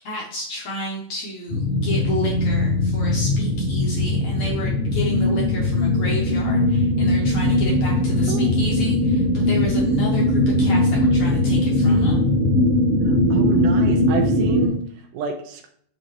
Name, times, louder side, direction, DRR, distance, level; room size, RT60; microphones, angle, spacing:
voice 1, 0.0-12.3, equal, 65° left, -2 dB, 1.9 m, -31 dB
sound 1, 1.5-14.7, left 1 dB, 10° right, 1.9 m, -20 dB
voice 2, 8.3-8.6 13.1-15.7, right 7 dB, 85° right, 4 dB, 1.8 m, -30 dB
7.0 x 6.2 x 3.0 m, 0.63 s
omnidirectional pair, 4.7 m